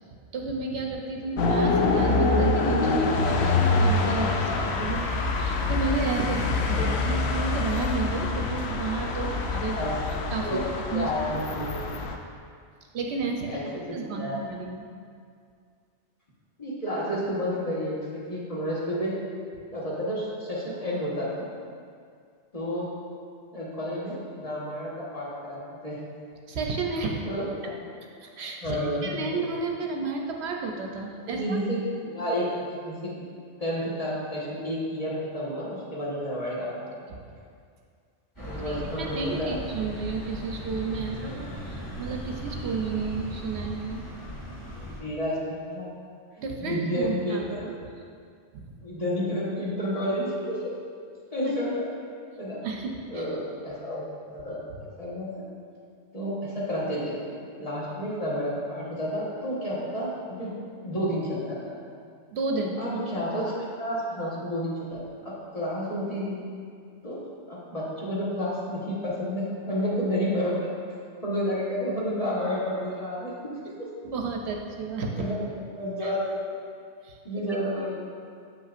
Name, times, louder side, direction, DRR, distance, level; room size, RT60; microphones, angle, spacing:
voice 1, 0.3-9.9 10.3-10.6 10.9-11.1 12.9-13.6 13.9-14.9 26.5-27.2 28.2-31.6 37.1-37.2 38.5-44.0 46.4-47.7 48.5-48.8 52.6-53.3 62.3-62.7 74.0-75.3 76.0-76.1 77.0-77.2, right 4 dB, 70° right, 1 dB, 0.8 m, -32 dB
sound 1, 1.4-12.2, left 3 dB, 70° left, 0.8 m, -25 dB
voice 2, 6.3-6.9 9.2-9.3 9.6-9.9 10.3-12.0 13.4-14.4 16.6-19.1 19.7-21.5 22.5-22.9 23.5-26.0 27.3-27.7 28.6-29.4 31.3-32.5 32.8-33.2 33.6-37.2 38.5-39.5 41.4-41.5 44.8-45.9 46.6-47.7 48.8-50.6 51.3-51.9 52.4-52.6 53.1-54.1 54.3-54.6 55.0-55.4 56.1-57.2 57.6-60.5 60.8-61.7 62.5-66.4 67.0-67.2 67.5-70.7 71.2-73.3 75.2-75.4 75.7-76.4 77.2-78.0, equal, 35° left, -7 dB, 1.3 m, -30 dB
sound 2, 38.3-45.0, equal, 15° left, 1.5 m, -38 dB
7.7 x 5.5 x 2.5 m, 2.2 s
omnidirectional pair, 1.2 m